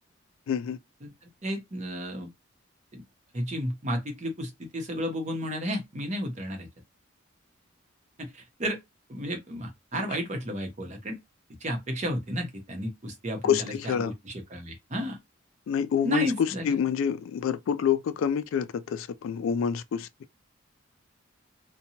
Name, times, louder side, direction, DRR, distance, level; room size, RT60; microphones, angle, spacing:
voice 1, 0.5-0.8 9.9-10.1 13.4-14.1 15.7-20.1, left 8 dB, 75° left, 0.3 m, -27 dB
voice 2, 1.4-2.3 2.9-3.0 3.3-6.7 8.2-8.8 9.1-11.2 11.6-15.2 16.0-16.8, equal, 35° right, 0.7 m, -32 dB
2.8 x 2.1 x 2.7 m
head